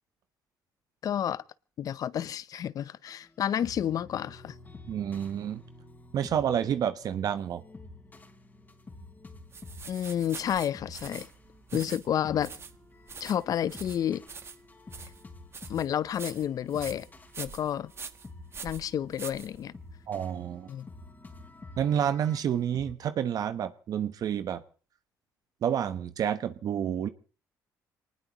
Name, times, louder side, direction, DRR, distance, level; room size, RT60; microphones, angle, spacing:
voice 1, 1.0-1.4 1.8-4.5 9.9-11.3 11.7-12.5 13.2-14.2 15.7-17.1 17.4-17.9 18.6-19.7 20.7-20.9, left 10 dB, 55° left, 0.7 m, -30 dB
sound 1, 3.1-22.9, left 2 dB, 25° left, 3.5 m, -50 dB
voice 2, 4.9-5.6 6.1-7.6 20.1-20.7 21.8-24.6 25.6-27.1, right 9 dB, 60° right, 1.0 m, -29 dB
sound 2, 9.5-20.0, right 5 dB, 35° right, 1.3 m, -45 dB
24.5 x 19.5 x 3.0 m
supercardioid pair, 80°, 7 cm